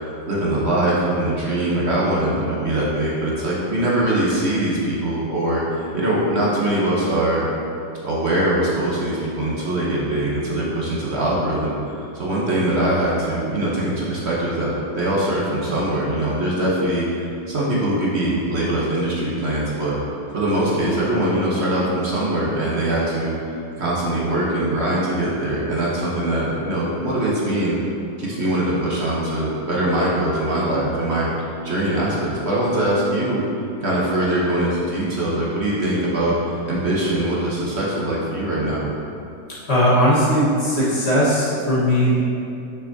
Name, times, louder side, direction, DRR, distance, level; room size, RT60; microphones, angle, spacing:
voice 1, 0.0-7.5 8.0-20.0 20.3-27.8 28.2-31.3 31.6-33.4 33.8-38.9, right 1 dB, 45° right, -6 dB, 1.1 m, -22 dB
voice 2, 39.7-42.2, equal, 35° left, -9 dB, 1.7 m, -18 dB
6.9 x 6.0 x 2.8 m, 2.6 s
omnidirectional pair, 2.0 m